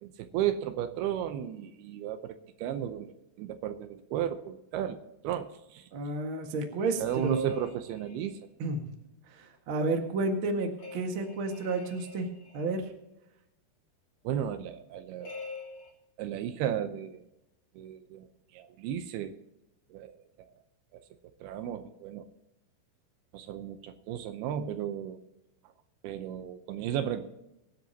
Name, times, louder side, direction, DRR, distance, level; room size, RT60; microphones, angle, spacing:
voice 1, 0.0-5.0 5.2-5.9 7.0-8.4 14.2-15.4 16.2-17.2 17.8-18.3 18.5-19.4 19.9-20.2 20.9-21.0 21.4-22.3 23.3-25.2 26.0-27.3, right 10 dB, 80° right, 9 dB, 2.6 m, -34 dB
voice 2, 5.9-7.5 8.6-8.8 9.4-12.3 12.5-12.8, right 3 dB, 50° right, 4 dB, 1.6 m, -31 dB
sound 1, 7.1-8.4 10.8-12.9 15.2-15.9, left 4 dB, 40° left, 4.3 m, -47 dB
23.5 x 10.5 x 2.8 m, 0.91 s
omnidirectional pair, 4.8 m